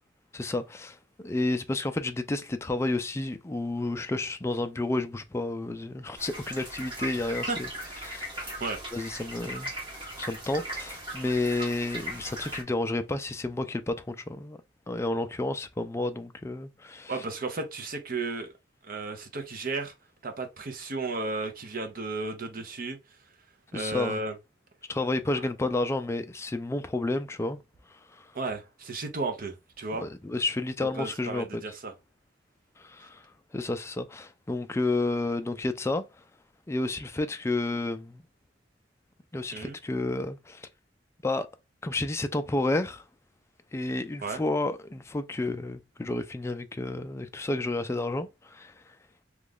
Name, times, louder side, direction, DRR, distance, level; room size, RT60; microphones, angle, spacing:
voice 1, 0.3-7.7 8.0-8.6 8.9-9.7 10.2-14.6 14.9-17.1 23.7-24.2 24.9-27.6 28.2-28.3 29.9-31.6 32.8-33.2 33.5-36.0 36.7-38.2 39.3-40.7 41.2-41.5 41.8-43.0 43.7-48.7, left 2 dB, 15° left, 0.3 m, -31 dB
sound 1, 6.2-12.6, right 1 dB, 25° right, 1.2 m, -38 dB
voice 2, 7.2-7.6 8.6-8.8 17.1-18.5 18.8-19.9 20.2-23.0 23.7-24.3 28.3-30.1 30.8-31.9 39.5-39.8 44.2-44.4, right 3 dB, 50° right, 0.7 m, -34 dB
3.0 x 2.4 x 3.5 m
head